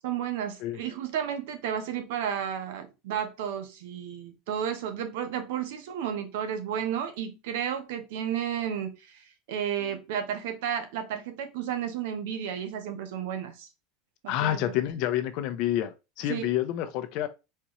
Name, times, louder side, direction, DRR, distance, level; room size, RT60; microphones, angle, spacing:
voice 1, 0.0-13.7 14.2-14.7 16.3-16.5, right 9 dB, 80° right, 0.9 m, -32 dB
voice 2, 14.3-17.3, left 12 dB, 60° left, 0.7 m, -28 dB
4.4 x 2.5 x 2.9 m
supercardioid pair, 140°, 0 cm